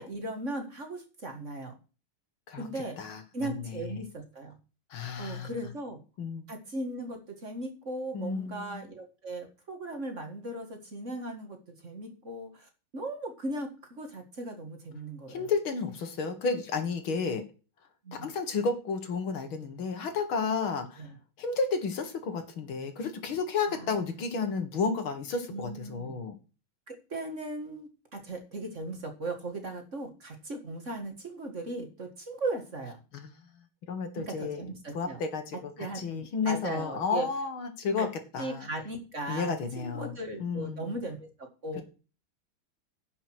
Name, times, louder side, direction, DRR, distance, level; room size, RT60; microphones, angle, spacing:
voice 1, 0.0-1.7 2.6-3.0 3.3-4.6 5.2-6.0 6.5-15.5 18.0-18.3 21.0-21.2 23.7-24.1 25.5-26.1 26.9-33.0 34.2-35.2 35.8-37.3 38.0-38.1 38.4-41.8, right 2 dB, 35° right, 4 dB, 2.0 m, -38 dB
voice 2, 3.0-3.6 4.9-5.5 6.2-6.4 8.1-8.7 15.3-17.4 18.1-21.1 21.4-26.4 33.1-33.3 33.9-38.1 38.3-38.7 39.3-40.9 41.8-41.9, left 5 dB, 75° left, 7 dB, 2.5 m, -32 dB
10.5 x 6.2 x 6.2 m, 0.34 s
omnidirectional pair, 2.3 m